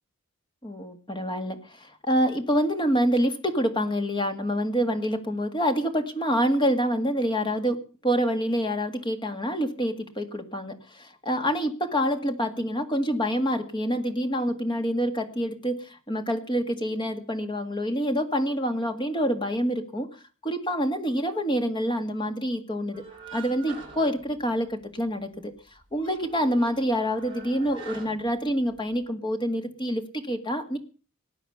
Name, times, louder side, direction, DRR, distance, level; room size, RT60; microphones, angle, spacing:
voice 1, 0.6-7.8 8.0-20.1 20.4-23.0 23.3-25.5 25.9-30.8, equal, 20° left, 7 dB, 1.9 m, -27 dB
sound 1, 22.9-25.0 25.3-25.4 25.8-29.0, right 5 dB, 25° right, 6.3 m, -45 dB
19.0 x 9.3 x 6.7 m, 0.38 s
head